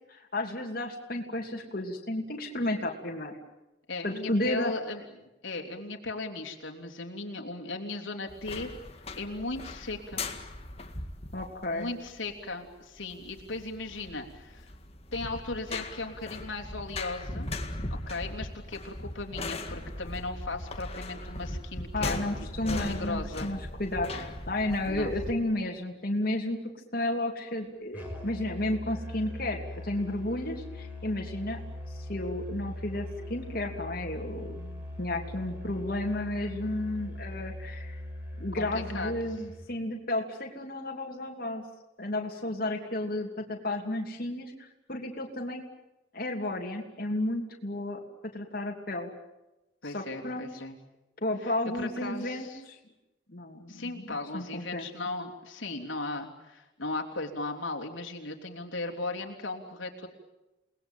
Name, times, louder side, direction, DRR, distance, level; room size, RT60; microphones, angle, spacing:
voice 1, 0.1-3.3 4.0-4.7 11.3-11.9 21.9-26.6 26.9-31.6 32.1-38.0 38.4-41.6 42.0-45.6 46.1-48.0 48.3-49.1 49.9-50.4 51.2-52.8 53.3-54.9, left 1 dB, 45° left, 0 dB, 3.0 m, -32 dB
voice 2, 3.9-5.0 5.4-8.7 9.2-10.2 11.7-14.7 15.1-17.5 18.1-22.2 22.6-23.5 24.9-25.1 38.6-39.1 49.8-50.8 51.7-52.6 53.7-60.1, left 2 dB, 80° left, 1 dB, 3.3 m, -37 dB
sound 1, 8.3-25.3, left 2 dB, 30° left, 2.0 m, -39 dB
Musical instrument, 27.9-39.7, left 1 dB, 10° right, 5.8 m, -41 dB
29.5 x 20.0 x 9.1 m, 0.98 s
head